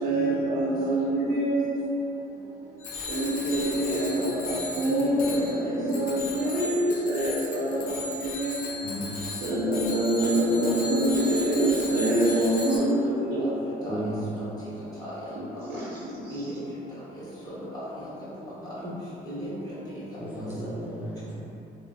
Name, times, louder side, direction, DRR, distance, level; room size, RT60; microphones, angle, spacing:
voice 1, 0.0-1.8 3.1-8.6 9.2-13.5 15.4-15.8 16.2-16.5, right 1 dB, 70° right, -7 dB, 0.5 m, -26 dB
Bicycle bell, 2.8-12.8, left 2 dB, 55° left, 0.5 m, -36 dB
voice 2, 4.8-5.3 5.6-5.8 6.6-6.7 13.3-13.4 13.8-14.0 15.0-15.1 16.3-16.5 17.4-17.8 18.8-18.9 19.2-20.0 20.4-20.5, equal, 20° left, -12 dB, 1.2 m, -36 dB
voice 3, 8.8-9.2 13.9-14.3 20.4-21.4, right 1 dB, 10° right, -7 dB, 0.5 m, -33 dB
3.0 x 2.0 x 2.5 m, 2.8 s
cardioid pair, 110°, 17 cm